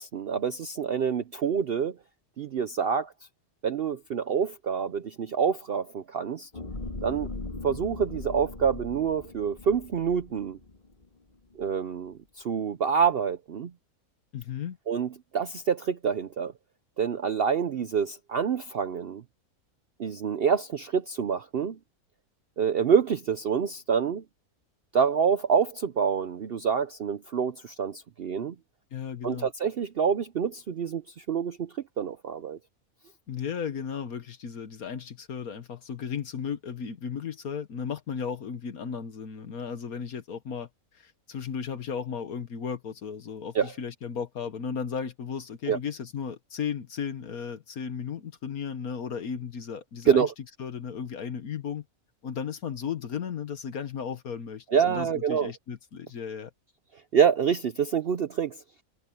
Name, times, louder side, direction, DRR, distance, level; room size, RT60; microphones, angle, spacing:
voice 1, 0.0-2.0 2.4-3.1 3.6-6.5 7.0-7.3 7.6-10.6 11.6-13.7 14.9-16.5 17.0-19.2 20.0-21.8 22.6-24.2 24.9-28.6 29.2-32.6 43.5-43.7 45.7-45.8 50.1-50.3 54.7-55.5 57.1-58.6, right 7 dB, 55° right, 0.7 m, -27 dB
sound 1, 6.5-11.0 11.5-11.7, left 3 dB, 30° left, 2.4 m, -39 dB
voice 2, 14.3-14.8 28.9-29.5 33.3-50.3 50.6-51.8 52.2-56.5, left 7 dB, 80° left, 1.7 m, -35 dB
omnidirectional pair, 1.5 m